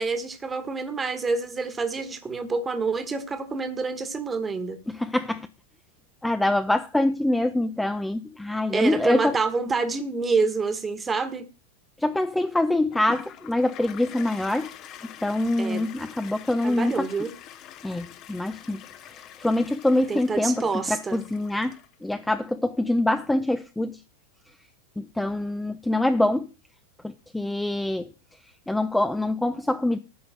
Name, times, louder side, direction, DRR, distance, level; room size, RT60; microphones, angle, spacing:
voice 1, 0.0-4.8 8.7-11.5 15.6-15.9 16.6-17.3 20.1-21.2, right 4 dB, 15° right, 1.4 m, -27 dB
voice 2, 4.9-5.5 6.2-9.3 12.0-14.7 15.2-17.1 17.8-18.8 19.4-24.0 25.0-26.5 27.0-28.1 28.7-30.0, left 1 dB, 5° left, 0.5 m, -25 dB
Toilet flush, 12.9-22.1, left 10 dB, 35° left, 0.9 m, -45 dB
9.4 x 5.4 x 7.9 m
figure-of-eight pair, 90°, 0 cm